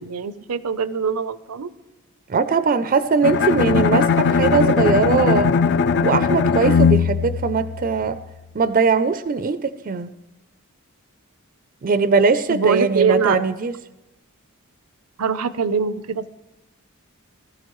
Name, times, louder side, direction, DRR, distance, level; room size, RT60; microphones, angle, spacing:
voice 1, 0.0-1.7 12.5-13.4 15.2-16.4, right 6 dB, 85° right, 0.6 m, -23 dB
voice 2, 2.3-5.5 6.0-8.2 8.5-10.1 11.8-13.7, right 4 dB, 40° right, 0.4 m, -20 dB
Bowed string instrument, 3.2-8.3, left 5 dB, 50° left, 0.4 m, -19 dB
20.5 x 14.0 x 3.1 m
head